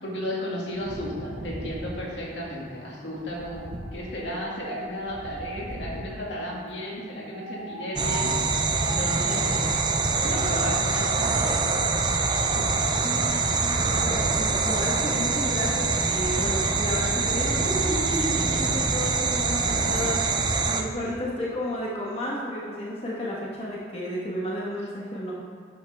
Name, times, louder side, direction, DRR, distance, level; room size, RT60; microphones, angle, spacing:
voice 1, 0.0-3.6 3.9-9.7 10.2-11.6, equal, 75° left, -4 dB, 2.3 m, -34 dB
Wind, 0.7-6.2 7.2-20.5, right 1 dB, 45° right, 1.1 m, -37 dB
sound 1, 8.0-20.8, right 4 dB, 25° right, 0.5 m, -25 dB
voice 2, 12.8-25.3, equal, 30° left, -5 dB, 1.4 m, -32 dB
11.5 x 7.9 x 3.5 m, 2.2 s
head